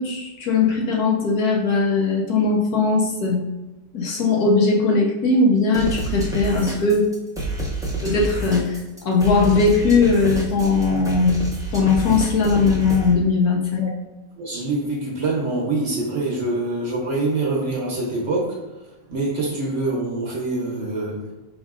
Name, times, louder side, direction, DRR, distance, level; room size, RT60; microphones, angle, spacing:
voice 1, 0.0-3.5 3.9-7.1 8.0-8.8 9.0-11.4 11.7-13.9, left 4 dB, 65° left, -2 dB, 1.3 m, -19 dB
sound 1, 5.7-13.1, right 2 dB, 5° right, 0.5 m, -28 dB
voice 2, 14.4-18.7 19.1-21.2, right 2 dB, 50° right, -3 dB, 1.1 m, -25 dB
5.3 x 3.8 x 2.4 m, 1.1 s
omnidirectional pair, 1.8 m